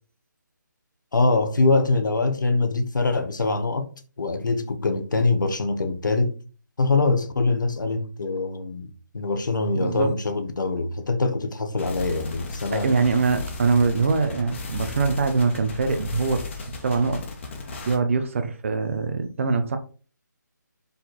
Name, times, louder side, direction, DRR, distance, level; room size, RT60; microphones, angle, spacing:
voice 1, 1.1-3.9 4.2-6.3 6.8-12.9, left 3 dB, 75° left, 1.3 m, -23 dB
voice 2, 9.8-10.1 12.7-16.5 16.8-17.3 17.9-19.8, right 4 dB, 40° right, 0.9 m, -23 dB
sound 1, 11.8-18.0, left 4 dB, 40° left, 1.6 m, -35 dB
5.4 x 4.2 x 4.4 m
figure-of-eight pair, 160°, 10 cm